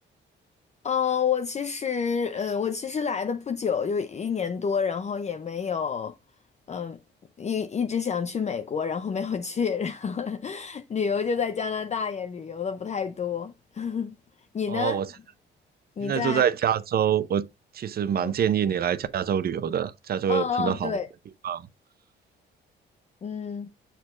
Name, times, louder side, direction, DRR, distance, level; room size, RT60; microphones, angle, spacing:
voice 1, 0.8-6.1 6.7-7.0 7.4-14.2 14.5-15.0 16.0-16.4 18.2-18.3 20.3-21.1 23.2-23.7, left 6 dB, 35° left, 0.6 m, -29 dB
voice 2, 14.7-15.1 16.0-17.4 17.7-21.0 21.4-21.7, right 8 dB, 50° right, 0.6 m, -25 dB
6.7 x 6.3 x 2.5 m
cardioid pair, 90°, 20 cm